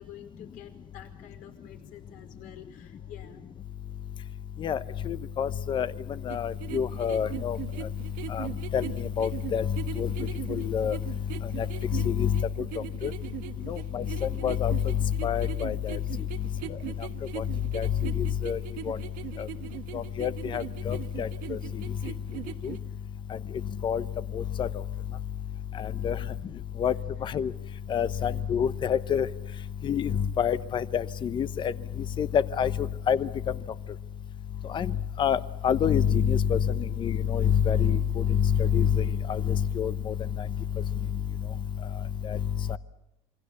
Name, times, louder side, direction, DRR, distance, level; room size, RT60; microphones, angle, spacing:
voice 1, 0.0-3.4 26.2-26.3, left 10 dB, 65° left, 6 dB, 4.8 m, -48 dB
voice 2, 5.1-5.9 6.3-7.6 8.3-8.5 8.7-9.7 10.0-10.1 10.5-11.0 11.6-12.4 13.0-13.1 13.7-14.7 15.2-16.0 17.4-17.5 17.7-17.9 18.2-18.6 18.9-19.0 19.4-19.5 19.9-21.6 22.6-22.8 23.8-24.0 24.3-24.7 25.8-26.2 26.8-26.9 27.2-27.5 27.9-29.3 29.8-31.7 32.2-33.3 34.7-34.9 35.2-40.1 42.2-42.4 42.7-42.8, left 8 dB, 30° left, 15 dB, 0.9 m, -27 dB
sound 1, 6.3-22.8, right 13 dB, 65° right, 1.3 m, -40 dB
27.0 x 23.0 x 7.1 m, 0.89 s
cardioid pair, 145°, 15 cm